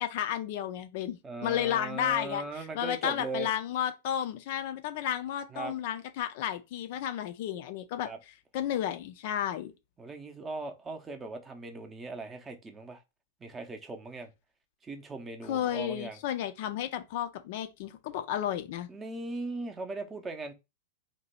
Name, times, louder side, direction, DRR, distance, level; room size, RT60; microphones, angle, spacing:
voice 1, 0.0-8.1 8.5-9.7 15.5-18.9, left 10 dB, 50° left, 0.4 m, -32 dB
voice 2, 1.2-3.5 5.5-5.7 8.0-8.2 10.0-13.0 13.4-14.3 14.8-16.2 18.9-20.5, right 3 dB, 15° right, 0.6 m, -39 dB
2.8 x 2.2 x 4.1 m
figure-of-eight pair, 95°, 0 cm